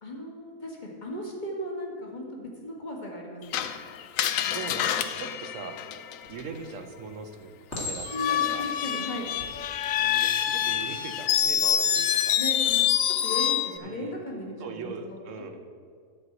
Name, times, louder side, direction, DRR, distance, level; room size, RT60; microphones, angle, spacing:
voice 1, 0.0-3.7 8.1-9.3 12.4-15.2, left 1 dB, 35° left, -1 dB, 1.9 m, -36 dB
Screech, 3.5-6.4 8.1-13.8, left 10 dB, 75° left, 1.0 m, -26 dB
voice 2, 4.5-5.8 6.3-8.7 10.0-12.4 13.8-14.1 14.6-15.6, right 5 dB, 65° right, 6 dB, 1.2 m, -40 dB
Chink clink, 6.2-6.7 7.7-8.5 9.2-9.5, left 2 dB, 55° left, 2.5 m, -36 dB
12.0 x 4.7 x 8.0 m, 2.2 s
omnidirectional pair, 1.4 m